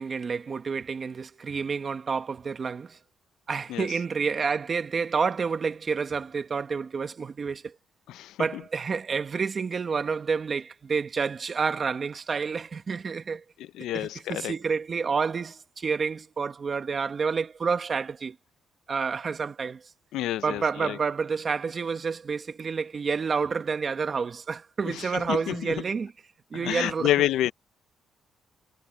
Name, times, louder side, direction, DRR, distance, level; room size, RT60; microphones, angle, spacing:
voice 1, 0.0-3.0 3.5-7.7 8.4-13.4 13.9-18.3 18.9-19.8 20.4-26.1 26.5-27.1, right 5 dB, 40° right, 1.5 m, -29 dB
voice 2, 8.1-8.6 13.6-14.5 20.1-21.0 24.8-25.7 26.5-27.5, left 13 dB, 85° left, 0.5 m, -29 dB
cardioid pair, 90°, 0 cm